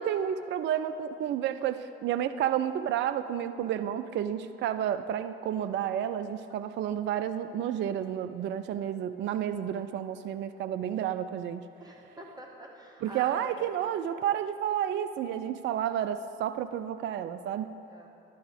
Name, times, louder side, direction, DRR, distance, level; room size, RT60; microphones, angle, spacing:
voice 1, 0.0-11.6 13.0-17.7, right 10 dB, 40° right, 11 dB, 0.4 m, -31 dB
voice 2, 11.8-13.7 17.9-18.1, equal, 15° right, -1 dB, 1.6 m, -46 dB
11.5 x 4.2 x 7.9 m, 2.8 s
hypercardioid pair, 55°, 29 cm